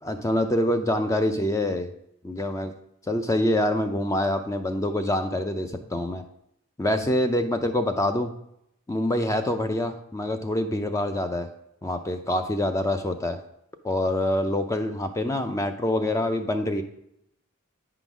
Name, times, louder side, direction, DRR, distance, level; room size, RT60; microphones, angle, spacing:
voice 1, 0.0-1.9 2.2-2.7 3.1-6.2 6.8-8.3 8.9-11.5 11.8-13.4 13.8-16.8, left 1 dB, 15° left, 7 dB, 0.4 m, -25 dB
9.1 x 3.9 x 6.0 m, 0.77 s
head